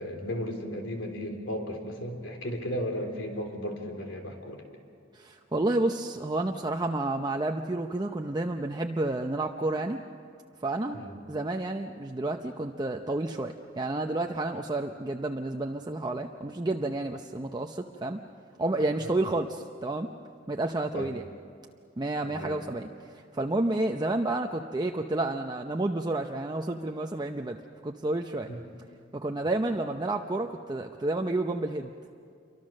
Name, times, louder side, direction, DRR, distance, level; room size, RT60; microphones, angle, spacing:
voice 1, 0.0-4.6 10.9-11.2 19.0-19.2 20.9-21.1 22.2-22.6 28.5-28.6 29.5-29.6, equal, 80° left, 4 dB, 3.4 m, -35 dB
voice 2, 5.1-10.0 10.6-11.0 11.3-18.2 18.6-20.1 20.5-21.2 22.0-22.9 23.3-28.5 29.1-31.9, right 2 dB, 20° right, 3 dB, 0.7 m, -30 dB
28.0 x 24.0 x 6.5 m, 2.3 s
head